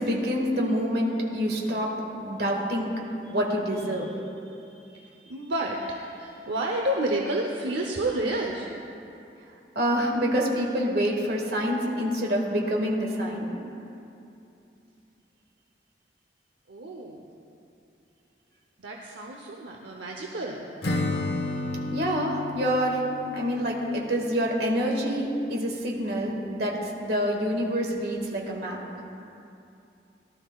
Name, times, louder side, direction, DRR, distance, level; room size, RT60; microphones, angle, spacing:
voice 1, 0.0-2.9 3.3-4.1 9.8-13.6 21.9-23.0 23.3-28.8, equal, 60° right, -1 dB, 1.9 m, -27 dB
voice 2, 3.7-4.1 4.6-8.7 16.7-17.2 18.8-20.6, right 1 dB, 80° right, 0 dB, 0.8 m, -30 dB
Acoustic guitar / Strum, 20.8-24.7, left 2 dB, 60° left, 1.2 m, -32 dB
18.0 x 12.0 x 2.4 m, 2.7 s
head